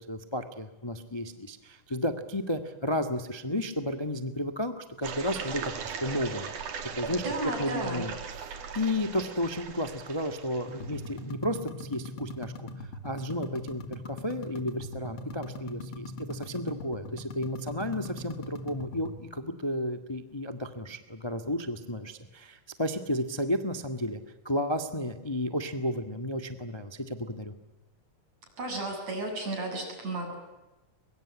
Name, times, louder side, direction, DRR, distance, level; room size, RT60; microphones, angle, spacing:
voice 1, 0.1-6.5 6.9-7.2 7.6-8.1 8.7-24.2 24.4-27.5, left 1 dB, 20° left, 8 dB, 0.6 m, -32 dB
sound 1, 5.0-11.1, right 6 dB, 70° right, 3.9 m, -38 dB
voice 2, 7.1-8.0 28.6-30.4, right 2 dB, 55° right, 3 dB, 8.9 m, -33 dB
sound 2, 10.7-19.2, left 2 dB, 45° left, 2.6 m, -41 dB
23.5 x 23.5 x 10.0 m, 1.1 s
omnidirectional pair, 3.7 m